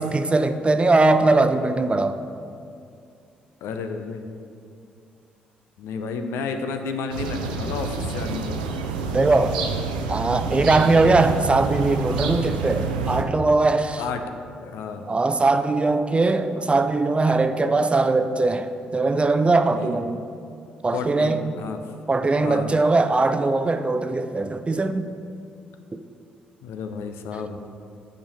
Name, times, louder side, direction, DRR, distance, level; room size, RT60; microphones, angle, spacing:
voice 1, 0.0-2.2 9.1-9.6 10.1-14.0 15.1-18.7 18.9-20.2 20.8-21.5 22.1-25.1 25.9-26.0, right 3 dB, 25° right, 9 dB, 0.5 m, -20 dB
voice 2, 3.6-4.3 5.8-8.7 14.0-14.2 14.6-15.1 19.7-20.0 20.9-21.8 22.4-22.7 26.6-27.6, left 5 dB, 65° left, 7 dB, 0.6 m, -31 dB
sound 1, 7.1-13.2, right 4 dB, 80° right, 0.5 m, -28 dB
8.8 x 5.2 x 5.7 m, 2.4 s
figure-of-eight pair, 45°, 5 cm